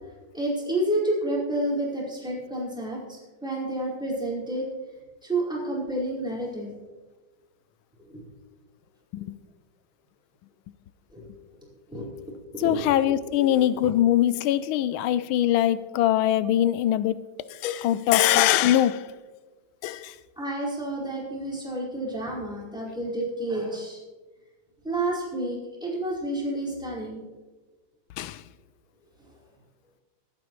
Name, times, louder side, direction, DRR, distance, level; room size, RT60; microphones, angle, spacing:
voice 1, 0.3-4.6 5.2-6.7 8.1-8.3 11.1-11.3 11.9-12.8 13.4-13.8 20.4-24.0 24.8-27.2, right 1 dB, ahead, 4.8 m, -30 dB
voice 2, 12.6-17.2 17.5-19.1 19.8-20.2 28.2-28.4, left 12 dB, 85° left, 1.4 m, -22 dB
25.0 x 9.1 x 3.2 m
omnidirectional pair, 2.2 m